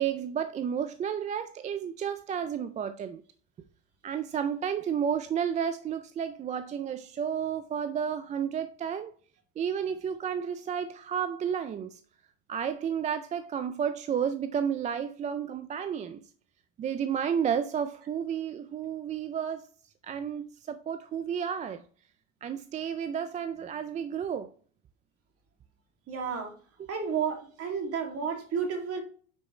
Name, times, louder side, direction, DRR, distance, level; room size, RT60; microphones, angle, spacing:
voice 1, 0.0-3.2 4.0-9.1 9.6-12.0 12.5-16.2 16.8-19.7 20.0-21.8 22.4-24.5 26.8-26.9, right 8 dB, 20° right, 0.3 m, -31 dB
voice 2, 26.1-26.5 26.9-29.0, right 6 dB, 40° right, 2.4 m, -31 dB
9.5 x 4.6 x 3.1 m
supercardioid pair, 110°, 37 cm